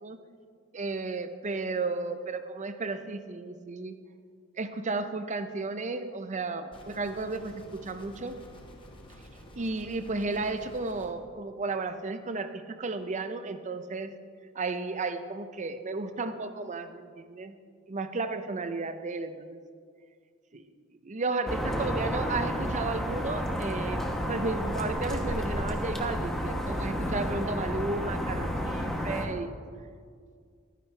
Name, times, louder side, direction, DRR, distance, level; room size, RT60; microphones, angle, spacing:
voice 1, 0.7-3.9 4.6-8.4 9.6-14.1 14.6-17.6 17.9-19.6 20.5-20.7 21.0-29.6, right 3 dB, 35° right, 10 dB, 0.6 m, -33 dB
sound 1, 6.7-11.1, left 1 dB, 25° left, 1.0 m, -50 dB
sound 2, 21.5-29.3, equal, ahead, 0.9 m, -31 dB
12.0 x 9.9 x 3.3 m, 2.1 s
head